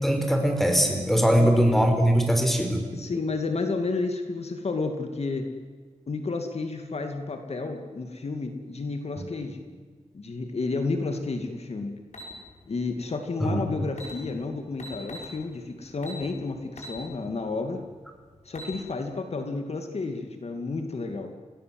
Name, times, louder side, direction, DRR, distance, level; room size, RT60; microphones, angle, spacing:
voice 1, 0.0-2.8 13.4-13.6, equal, ahead, 4 dB, 5.1 m, -21 dB
voice 2, 2.9-5.5 6.1-9.6 10.1-11.9 12.7-17.8 18.4-21.3, left 3 dB, 60° left, 5 dB, 2.5 m, -31 dB
sound 1, 12.1-12.3 13.5-13.6 13.9-14.1 14.8-15.3 16.0-16.2 16.8-17.0 17.4-17.5 18.3-18.8, left 1 dB, 85° left, 6.2 m, -40 dB
28.0 x 18.5 x 7.9 m, 1.5 s
wide cardioid pair, 75°, 12 cm